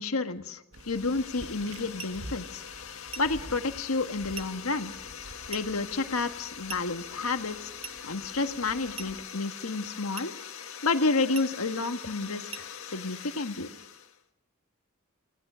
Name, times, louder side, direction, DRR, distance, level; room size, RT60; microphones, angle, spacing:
voice 1, 0.0-2.6 3.2-4.9 5.5-10.3 10.8-13.7, left 3 dB, 85° left, 7 dB, 1.5 m, -30 dB
sound 1, 0.7-14.2, left 8 dB, 70° left, 1.9 m, -43 dB
sound 2, 0.7-9.3, right 1 dB, 65° right, 1.8 m, -49 dB
sound 3, 2.0-2.2 3.1-3.4 4.3-4.6 5.5-5.8 6.7-7.0 7.8-8.1 9.0-9.2 10.2-10.4 11.3-11.6 12.5-12.8, right 5 dB, 25° right, 1.0 m, -42 dB
29.0 x 18.5 x 6.2 m, 0.82 s
head